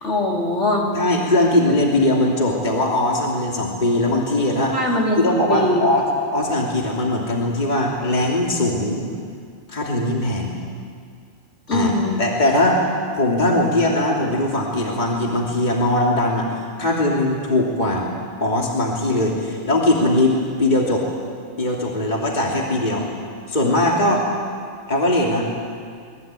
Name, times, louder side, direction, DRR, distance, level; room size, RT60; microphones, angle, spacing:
voice 1, 0.0-0.9 4.7-5.8 11.7-12.2, left 1 dB, 65° left, -2 dB, 3.9 m, -21 dB
voice 2, 0.9-4.8 5.2-6.0 6.3-9.0 9.7-10.5 11.7-11.9 12.2-12.8 13.1-18.1 18.4-21.1 21.6-23.1 23.5-24.3 24.9-25.5, left 1 dB, 35° left, -2 dB, 3.0 m, -20 dB
25.5 x 20.0 x 9.0 m, 2.2 s
omnidirectional pair, 1.3 m